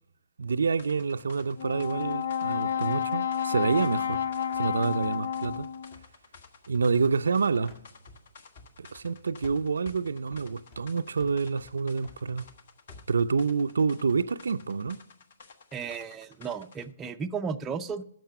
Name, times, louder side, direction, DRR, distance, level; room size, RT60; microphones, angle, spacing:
voice 1, 0.4-4.2 4.5-5.7 6.7-7.8 8.8-12.4 13.1-15.0, right 5 dB, 90° right, 0.5 m, -28 dB
sound 1, 0.8-16.9, left 5 dB, 60° left, 1.3 m, -54 dB
Brass instrument, 1.6-6.0, left 8 dB, 75° left, 0.6 m, -30 dB
sound 2, 4.1-7.3 7.7-9.1 9.4-13.6, left 3 dB, 35° left, 1.7 m, -54 dB
voice 2, 15.7-18.0, right 6 dB, 15° right, 0.5 m, -34 dB
10.5 x 6.6 x 6.6 m
hypercardioid pair, 155°, 0 cm